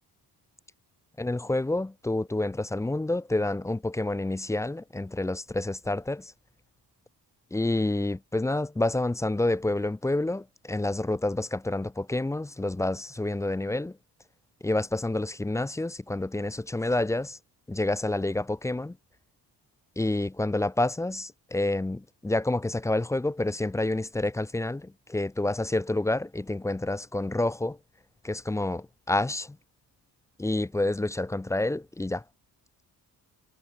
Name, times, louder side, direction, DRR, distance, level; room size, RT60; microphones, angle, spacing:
voice 1, 1.2-6.3 7.5-14.0 14.6-17.4 17.7-19.0 20.0-27.8 28.2-29.6 30.4-32.2, left 2 dB, 10° left, 0.4 m, -28 dB
cardioid pair, 145°, 41 cm